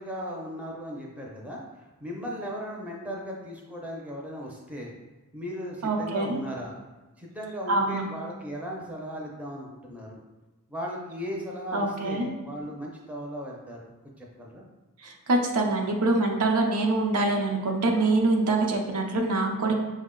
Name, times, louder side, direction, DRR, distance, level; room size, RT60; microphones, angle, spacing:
voice 1, 0.0-4.9 5.3-6.8 7.2-10.2 10.7-13.8 14.2-14.6, equal, 5° right, -2 dB, 0.6 m, -37 dB
voice 2, 5.8-6.4 7.7-8.0 11.7-12.3 15.0-19.7, right 2 dB, 90° right, 1 dB, 0.7 m, -25 dB
6.1 x 2.1 x 3.7 m, 1.2 s
head